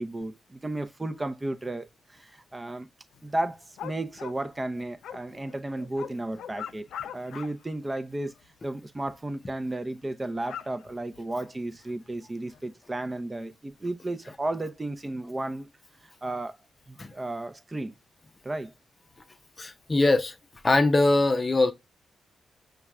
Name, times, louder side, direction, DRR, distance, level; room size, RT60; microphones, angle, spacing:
voice 1, 0.0-2.9 3.2-6.8 7.1-8.3 8.6-15.7 16.0-16.6 16.9-17.9 18.4-18.7, right 2 dB, 20° right, 0.6 m, -33 dB
sound 1, 3.1-7.7 8.0-8.5 9.0-9.1 9.5-9.6 10.0-11.9 12.5-12.6, left 9 dB, 85° left, 0.3 m, -42 dB
voice 2, 19.6-20.4 20.6-21.7, left 2 dB, 35° left, 0.6 m, -22 dB
5.7 x 2.4 x 3.3 m
cardioid pair, 70°, 0 cm